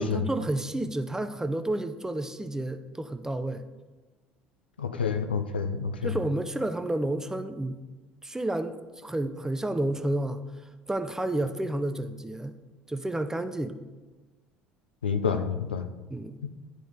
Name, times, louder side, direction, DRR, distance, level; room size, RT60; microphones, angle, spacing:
voice 1, 0.0-3.6 6.0-7.8 8.2-10.4 10.9-12.6 12.9-13.8 16.1-16.4, right 1 dB, 10° right, 9 dB, 0.6 m, -30 dB
voice 2, 4.8-6.2 15.0-15.9, left 6 dB, 85° left, 7 dB, 0.6 m, -28 dB
10.5 x 3.9 x 4.9 m, 1.2 s
figure-of-eight pair, 60°, 5 cm